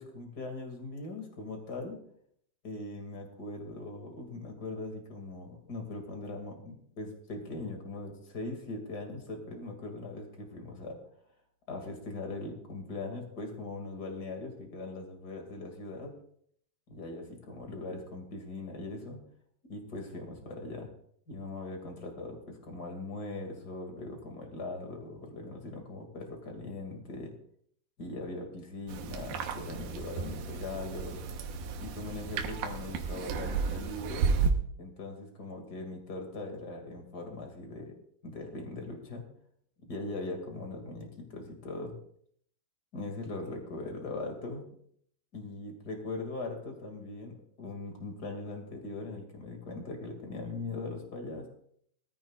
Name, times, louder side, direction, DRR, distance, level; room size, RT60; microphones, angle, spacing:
voice 1, 0.0-2.0 2.6-11.0 11.7-16.1 16.9-19.2 19.6-20.9 21.3-27.3 28.0-31.2 31.8-34.3 34.8-38.0 38.2-39.2 39.8-42.0 42.9-44.6 45.3-51.5, left 2 dB, 30° left, 3 dB, 1.9 m, -40 dB
sound 1, 28.9-34.5, right 5 dB, 75° right, 2.7 m, -33 dB
20.5 x 13.5 x 2.4 m, 0.66 s
omnidirectional pair, 4.7 m